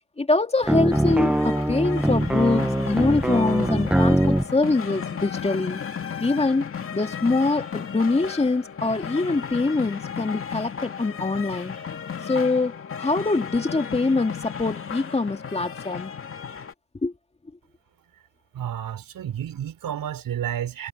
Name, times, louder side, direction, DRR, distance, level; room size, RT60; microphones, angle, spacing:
voice 1, 0.2-5.8 6.2-11.7 12.2-16.1 17.0-17.1, left 3 dB, 15° left, 2.3 m, -24 dB
sound 1, 0.6-4.5, right 1 dB, 5° right, 0.8 m, -22 dB
sound 2, 0.9-16.7, left 7 dB, 30° left, 2.5 m, -34 dB
voice 2, 18.5-20.9, right 10 dB, 50° right, 5.1 m, -31 dB
supercardioid pair, 100°, 42 cm